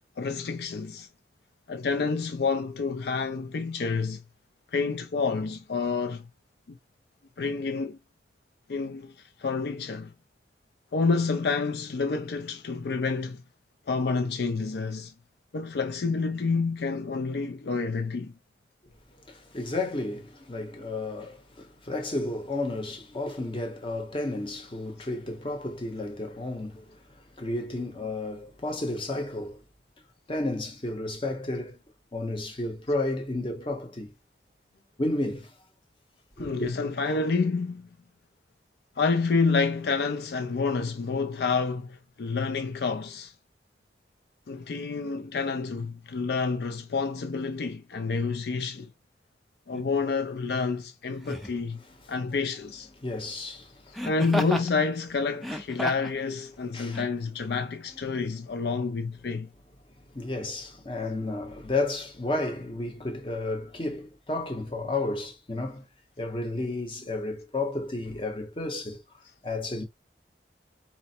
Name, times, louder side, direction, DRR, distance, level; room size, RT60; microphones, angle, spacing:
voice 1, 0.2-1.1 1.7-4.2 4.7-6.3 6.7-6.8 7.4-8.0 8.7-9.1 9.4-10.1 10.9-13.4 13.9-15.1 15.5-18.3 36.4-37.9 39.0-43.3 44.5-48.9 49.7-51.8 52.1-52.9 54.0-59.5, left 4 dB, 65° left, 0.4 m, -28 dB
voice 2, 19.3-27.0 27.4-29.6 30.3-31.8 32.1-34.1 35.0-35.5 36.4-36.7 53.0-54.0 56.7-57.0 60.1-65.8 66.2-69.0 69.4-69.8, left 2 dB, 30° left, 0.8 m, -32 dB
Laughter, 49.7-49.9 51.2-51.6 53.9-54.7 55.3-56.2 56.9-57.1, equal, ahead, 0.4 m, -32 dB
4.2 x 2.1 x 4.3 m
head